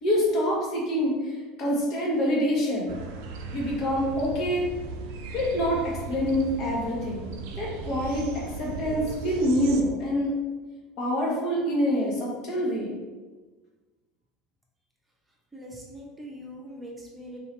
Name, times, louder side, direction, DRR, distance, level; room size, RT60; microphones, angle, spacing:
voice 1, 0.0-2.9 3.5-4.7 5.3-7.3 7.6-10.3 11.0-13.0, equal, 55° left, -3 dB, 1.3 m, -26 dB
sound 1, 2.9-9.8, right 4 dB, 75° right, 0.4 m, -37 dB
voice 2, 15.5-17.4, equal, 15° right, -2 dB, 0.7 m, -42 dB
3.6 x 2.8 x 3.3 m, 1.3 s
hypercardioid pair, 85°, 0 cm